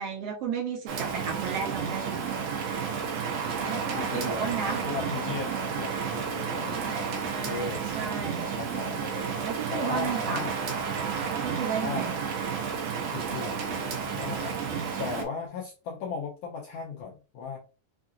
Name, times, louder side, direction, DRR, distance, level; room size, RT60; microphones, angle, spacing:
voice 1, 0.0-2.2 3.6-4.8 6.6-8.5 9.4-10.5 11.3-12.2, right 6 dB, 70° right, 2 dB, 1.6 m, -34 dB
Rain, 0.9-15.2, right 6 dB, 90° right, 2.5 m, -31 dB
voice 2, 1.2-1.7 2.8-3.1 3.6-7.8 8.4-10.6 11.8-12.1 13.1-14.6 15.0-17.6, left 5 dB, 75° left, 0 dB, 1.4 m, -38 dB
5.6 x 2.7 x 2.4 m, 0.33 s
omnidirectional pair, 3.5 m